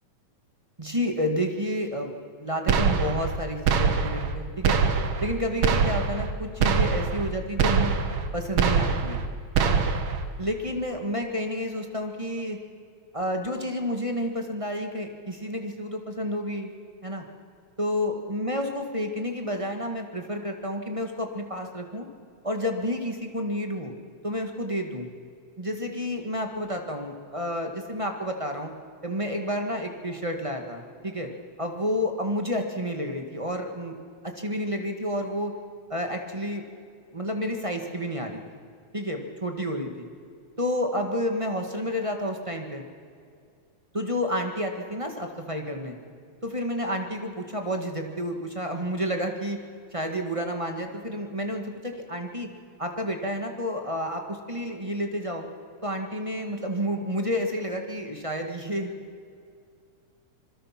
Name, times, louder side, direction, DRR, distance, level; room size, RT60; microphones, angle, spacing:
voice 1, 0.8-2.1 2.4-4.8 5.2-8.0 8.3-9.2 9.5-9.8 10.4-12.6 13.1-16.7 17.0-17.2 17.8-22.1 22.4-23.9 24.2-25.1 25.6-28.7 29.0-31.3 31.6-33.9 34.2-35.5 35.9-36.6 37.1-38.4 38.9-39.9 40.6-42.8 43.9-45.9 46.4-49.6 49.9-52.5 52.8-55.4 55.8-58.9, equal, 15° right, 4 dB, 1.1 m, -30 dB
sound 1, 2.7-3.4 3.7-4.4 4.6-5.3 5.6-6.3 6.6-7.3 7.6-8.3 8.6-9.3 9.6-10.2, right 6 dB, 60° right, 2.0 m, -23 dB
26.0 x 22.5 x 5.9 m, 2.3 s
omnidirectional pair, 3.3 m